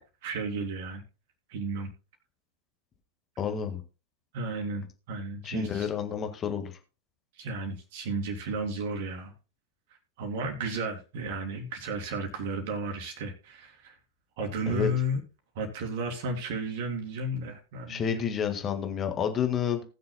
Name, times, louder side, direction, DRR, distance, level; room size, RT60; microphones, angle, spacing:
voice 1, 0.2-1.0 1.5-1.9 4.3-5.9 7.4-9.3 10.2-14.0 14.4-15.2 15.5-18.2, right 2 dB, 50° right, 2 dB, 3.1 m, -33 dB
voice 2, 3.4-3.8 5.4-6.8 14.7-14.9 17.9-19.8, left 7 dB, 25° left, 6 dB, 1.6 m, -30 dB
19.5 x 6.7 x 2.2 m, 0.33 s
figure-of-eight pair, 90°, 0 cm